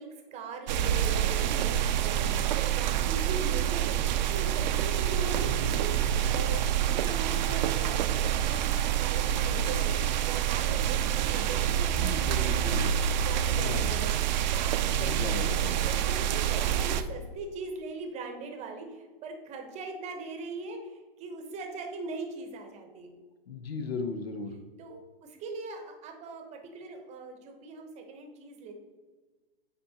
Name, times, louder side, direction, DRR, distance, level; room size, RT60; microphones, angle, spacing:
voice 1, 0.0-12.8 13.2-15.5 15.8-23.2 24.8-28.7, right 3 dB, 20° right, 4 dB, 0.8 m, -40 dB
sound 1, 0.7-17.0, right 10 dB, 50° right, 0.4 m, -27 dB
voice 2, 11.9-12.9 13.6-14.0 14.8-15.9 23.5-24.5, left 4 dB, 85° left, 8 dB, 0.9 m, -37 dB
8.5 x 4.3 x 2.8 m, 1.3 s
hypercardioid pair, 125°, 30 cm